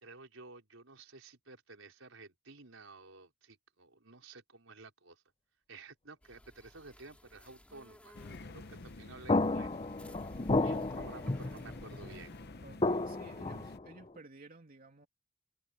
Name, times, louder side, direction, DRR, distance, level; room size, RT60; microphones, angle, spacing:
voice 1, 0.0-5.2 5.7-9.7 10.6-12.3, right 3 dB, 80° right, 4.8 m, -53 dB
sound 1, 6.2-12.5, equal, 5° left, 2.6 m, -57 dB
sound 2, 8.1-13.8, left 2 dB, 55° left, 0.9 m, -49 dB
sound 3, 9.3-12.2 12.8-14.1, left 2 dB, 30° left, 0.8 m, -32 dB
voice 2, 12.6-15.1, right 2 dB, 45° right, 2.9 m, -53 dB
head